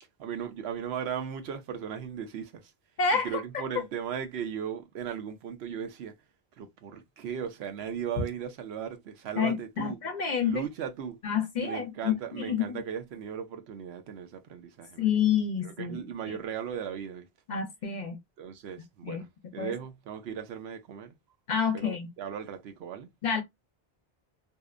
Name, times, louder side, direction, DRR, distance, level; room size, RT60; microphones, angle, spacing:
voice 1, 0.2-2.7 3.1-6.1 6.6-10.0 10.4-11.2 11.5-15.1 15.6-17.3 18.4-21.2 21.7-23.1, right 8 dB, 85° right, 0.9 m, -37 dB
voice 2, 3.0-3.6 9.4-10.7 11.2-12.8 15.0-16.0 17.5-18.2 19.0-19.2 19.6-19.7 21.5-22.1 23.2-23.4, left 7 dB, 55° left, 0.6 m, -28 dB
2.7 x 2.0 x 2.3 m
omnidirectional pair, 1.0 m